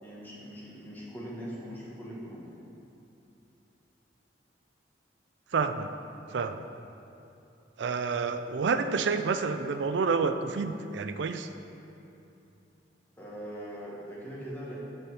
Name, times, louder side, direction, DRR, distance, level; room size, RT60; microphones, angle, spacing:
voice 1, 0.0-2.4 13.2-14.8, equal, 10° left, -6 dB, 1.4 m, -41 dB
voice 2, 5.5-5.9 6.3-6.6 7.8-11.5, right 5 dB, 70° right, 9 dB, 0.4 m, -29 dB
6.2 x 5.7 x 6.2 m, 2.8 s
head